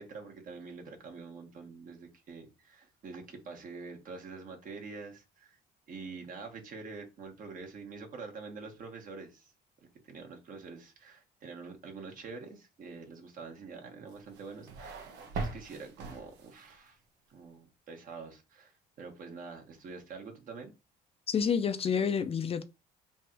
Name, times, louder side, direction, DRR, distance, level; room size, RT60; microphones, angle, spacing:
voice 1, 0.0-5.6 5.9-9.5 9.8-17.0 17.3-20.7, right 4 dB, 55° right, 1.4 m, -46 dB
sound 1, 14.1-16.8, right 3 dB, 85° right, 0.8 m, -41 dB
voice 2, 21.3-22.6, left 7 dB, 35° left, 0.4 m, -29 dB
3.4 x 2.6 x 4.4 m
cardioid pair, 110°, 17 cm